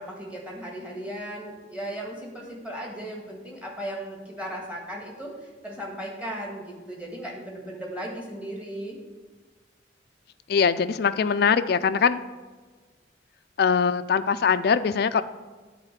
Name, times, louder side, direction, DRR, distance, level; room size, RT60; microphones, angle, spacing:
voice 1, 0.0-9.0, right 1 dB, 5° right, -1 dB, 1.6 m, -36 dB
voice 2, 10.5-12.2 13.6-15.2, left 6 dB, 55° left, 12 dB, 0.3 m, -22 dB
9.0 x 4.1 x 7.1 m, 1.4 s
head